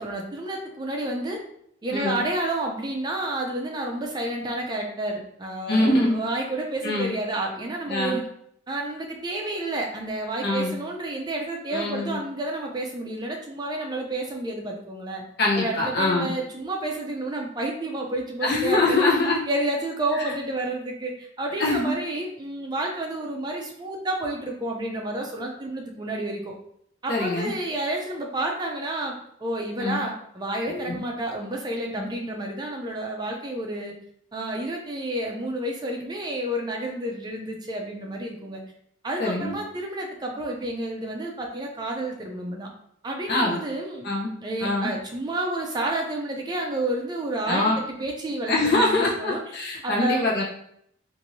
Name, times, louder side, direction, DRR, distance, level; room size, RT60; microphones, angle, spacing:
voice 1, 0.0-1.4 1.8-8.2 8.7-15.2 15.6-19.1 19.5-26.5 27.0-33.9 34.3-38.6 39.0-42.7 43.0-44.1 44.4-49.4 49.8-50.3, right 1 dB, 20° right, 1 dB, 0.4 m, -30 dB
voice 2, 1.9-2.2 5.7-6.2 6.8-7.1 7.9-8.2 10.4-10.7 11.7-12.2 15.4-16.3 18.4-19.4 20.1-20.3 21.6-21.9 27.1-27.5 29.8-30.0 30.7-31.0 32.0-32.1 39.2-39.5 43.3-43.6 44.0-44.3 44.6-44.9 47.5-47.8 48.5-50.4, left 2 dB, 55° left, -3 dB, 0.7 m, -24 dB
3.0 x 2.6 x 2.6 m, 0.71 s
head